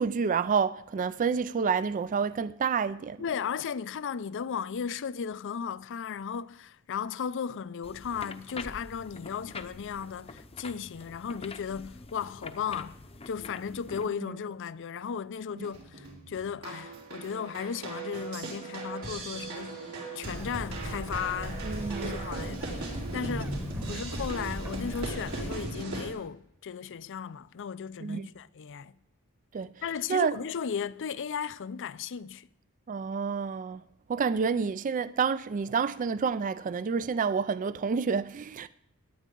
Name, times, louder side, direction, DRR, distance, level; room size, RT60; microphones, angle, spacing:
voice 1, 0.0-3.2 14.2-14.3 21.6-22.3 23.9-24.0 28.0-28.3 29.5-29.7 30.1-30.3 32.9-33.8 34.1-38.7, right 6 dB, 35° right, 0.3 m, -29 dB
voice 2, 3.2-13.0 13.3-19.9 20.1-21.7 22.0-23.6 23.9-28.9 29.8-32.5, left 7 dB, 60° left, 0.5 m, -35 dB
sound 1, 7.8-14.1, left 3 dB, 25° left, 0.7 m, -45 dB
sound 2, 15.6-26.1, right 2 dB, 75° right, 4.0 m, -38 dB
Bird, 20.3-25.6, equal, 10° right, 1.0 m, -39 dB
17.5 x 10.0 x 3.7 m
head